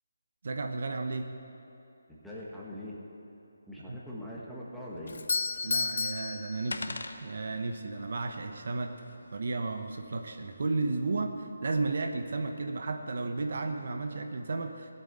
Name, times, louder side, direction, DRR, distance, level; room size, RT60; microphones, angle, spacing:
voice 1, 0.4-1.3 3.9-4.0 5.6-8.9 9.3-14.9, right 3 dB, 55° right, 5 dB, 1.1 m, -33 dB
voice 2, 2.1-3.0 3.7-5.2, left 1 dB, ahead, -7 dB, 1.6 m, -42 dB
Doorbell, 5.1-7.2, left 4 dB, 65° left, 0.7 m, -32 dB
sound 1, 5.5-11.0, left 2 dB, 90° left, 1.0 m, -46 dB
16.5 x 8.1 x 9.0 m, 2.9 s
hypercardioid pair, 170°, 0 cm